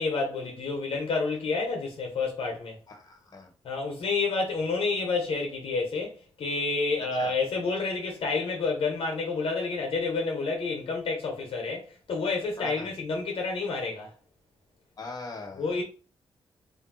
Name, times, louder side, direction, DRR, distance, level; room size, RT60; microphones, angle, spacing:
voice 1, 0.0-2.8 3.6-14.1 15.6-15.8, left 4 dB, 70° left, 1.2 m, -29 dB
voice 2, 2.9-3.5 7.2-7.3 12.6-12.9 15.0-15.8, left 3 dB, 40° left, 1.4 m, -41 dB
3.4 x 2.6 x 4.3 m
cardioid pair, 85°, 10 cm